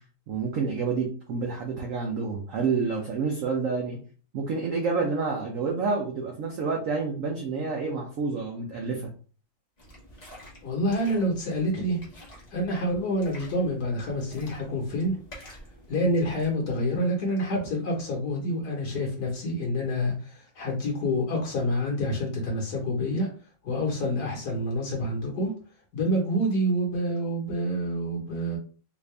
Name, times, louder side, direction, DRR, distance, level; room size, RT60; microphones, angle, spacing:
voice 1, 0.3-4.0 4.3-9.1, right 4 dB, 85° right, 1 dB, 0.7 m, -28 dB
sound 1, 9.8-16.5, equal, 30° left, 0.8 m, -49 dB
voice 2, 10.6-12.0 12.5-15.2 15.9-23.3 23.6-25.5 25.9-28.6, equal, 55° left, 0 dB, 1.5 m, -27 dB
3.7 x 2.5 x 3.2 m, 0.39 s
omnidirectional pair, 2.2 m